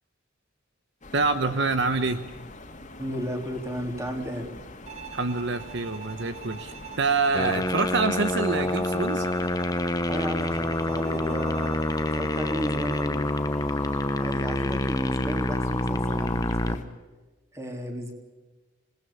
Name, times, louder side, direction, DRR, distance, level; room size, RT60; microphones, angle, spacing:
sound 1, 1.0-16.8, left 2 dB, 35° left, 2.6 m, -44 dB
voice 1, 1.1-2.2 5.1-9.3, right 3 dB, 60° right, 10 dB, 1.0 m, -26 dB
voice 2, 3.0-4.5 10.1-13.3 14.1-16.9 17.5-18.1, equal, 15° right, 3 dB, 3.4 m, -34 dB
Bowed string instrument, 4.9-13.2, right 8 dB, 35° right, 1.3 m, -44 dB
sound 2, 7.3-16.8, left 1 dB, 20° left, 0.8 m, -27 dB
26.5 x 19.5 x 7.1 m, 1.2 s
head